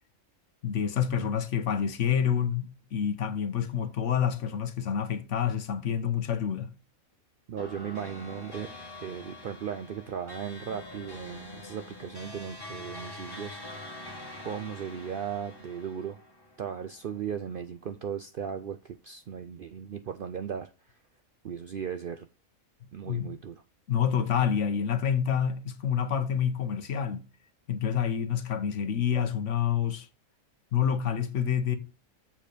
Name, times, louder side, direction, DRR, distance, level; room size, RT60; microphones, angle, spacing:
voice 1, 0.6-6.7 23.1-23.3 23.9-27.3 27.7-30.1 30.7-31.8, left 8 dB, 65° left, 1.1 m, -28 dB
voice 2, 7.5-14.0 14.4-16.2 16.6-20.7 21.4-22.3 22.9-23.6, right 8 dB, 65° right, 0.5 m, -37 dB
sound 1, 7.6-17.2, left 1 dB, 15° left, 1.4 m, -45 dB
7.4 x 4.4 x 5.0 m
omnidirectional pair, 1.4 m